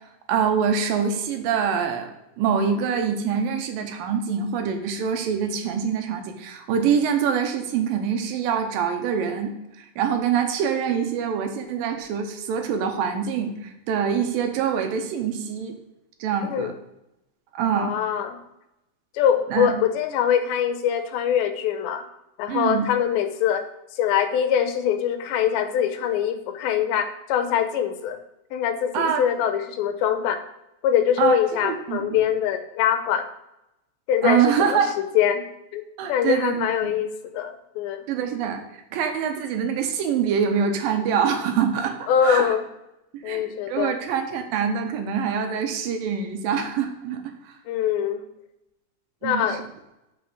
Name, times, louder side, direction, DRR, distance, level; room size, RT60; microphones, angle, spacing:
voice 1, 0.3-15.8 16.2-16.7 17.5-18.0 19.5-19.7 22.5-22.9 28.9-29.2 31.2-32.2 34.2-34.9 36.0-36.9 38.1-38.6 38.9-42.5 43.1-47.5 49.2-49.6, right 7 dB, 80° right, 5 dB, 2.5 m, -25 dB
voice 2, 17.7-18.4 19.1-22.1 22.4-23.6 23.9-28.2 28.5-30.4 30.8-33.3 34.1-35.4 35.7-35.8 36.1-38.0 42.1-42.6 43.2-43.9 47.7-48.2 49.2-49.6, left 9 dB, 90° left, 9 dB, 2.6 m, -23 dB
6.1 x 5.8 x 6.3 m, 0.90 s
omnidirectional pair, 4.2 m